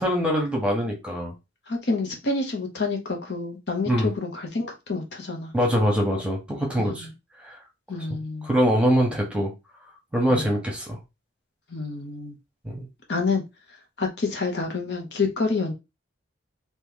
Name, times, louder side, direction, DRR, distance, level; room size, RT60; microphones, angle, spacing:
voice 1, 0.0-1.3 3.9-4.1 5.5-7.1 7.4-7.6 8.4-9.5 10.1-11.0 12.6-12.8, equal, 5° right, 1.0 m, -23 dB
voice 2, 1.7-5.5 6.8-7.1 7.9-8.5 10.3-10.5 11.7-12.3 13.1-13.4 14.0-15.7, left 3 dB, 60° left, 0.9 m, -28 dB
3.0 x 2.9 x 3.7 m
head